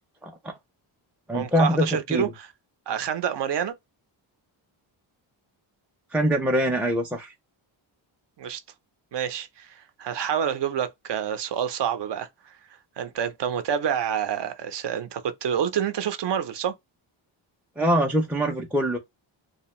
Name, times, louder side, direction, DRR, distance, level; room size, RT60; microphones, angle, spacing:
voice 1, 0.2-0.6 1.3-2.3 6.1-7.3 17.8-19.0, equal, 5° right, 0.4 m, -24 dB
voice 2, 1.3-2.5 2.9-3.7 8.4-8.6 9.1-12.5 13.0-16.7, right 8 dB, 60° right, 0.6 m, -28 dB
2.7 x 2.1 x 3.0 m
cardioid pair, 105°, 48 cm